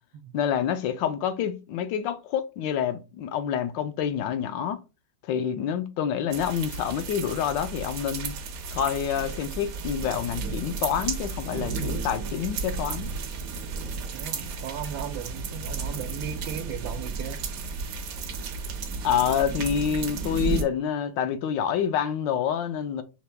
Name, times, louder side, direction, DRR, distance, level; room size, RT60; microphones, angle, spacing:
voice 1, 0.3-4.8 5.3-8.3 8.7-13.1 19.0-23.0, left 8 dB, 75° left, 1.3 m, -27 dB
sound 1, 6.3-20.6, right 5 dB, 65° right, 0.9 m, -33 dB
voice 2, 14.1-17.4, right 9 dB, 85° right, 1.3 m, -36 dB
5.8 x 2.2 x 3.3 m
omnidirectional pair, 2.1 m